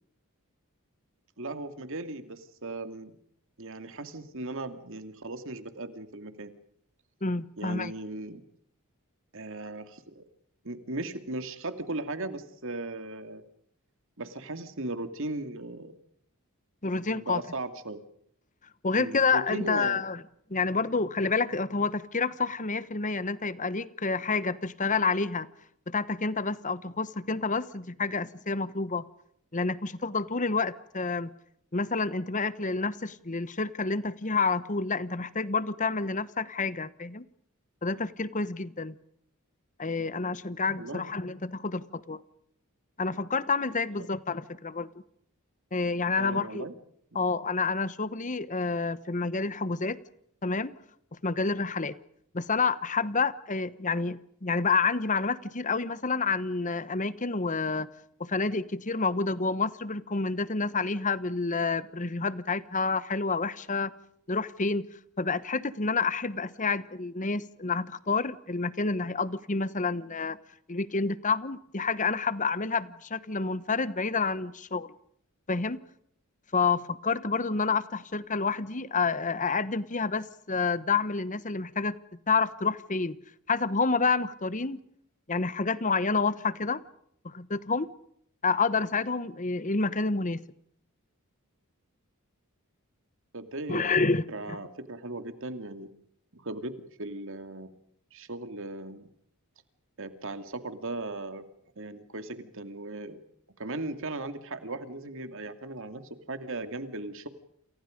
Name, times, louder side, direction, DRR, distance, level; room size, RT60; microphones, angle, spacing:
voice 1, 1.4-3.2 3.6-6.5 7.6-8.4 9.3-10.2 10.6-13.4 14.2-15.9 17.1-18.0 19.0-20.0 40.8-41.1 44.0-44.1 46.2-46.7 47.1-47.2 93.3-95.9 96.3-96.7 97.0-97.7 98.1-99.1 100.0-101.5 101.8-103.2 103.6-107.3, right 2 dB, 60° right, 9 dB, 2.5 m, -37 dB
voice 2, 7.2-7.9 16.8-17.4 18.8-20.2 20.5-25.5 25.9-29.0 29.5-31.3 31.7-37.2 37.8-39.0 39.8-42.2 43.0-44.9 45.7-46.7 47.1-50.0 50.4-50.7 51.2-52.0 52.3-57.9 58.2-63.9 64.3-64.9 65.2-70.4 70.7-74.9 75.5-75.8 76.5-82.0 82.3-83.2 83.5-84.8 85.3-86.8 87.2-87.9 88.4-90.4 93.7-94.6, left 4 dB, 35° left, 16 dB, 1.1 m, -29 dB
28.5 x 28.5 x 5.3 m, 0.68 s
head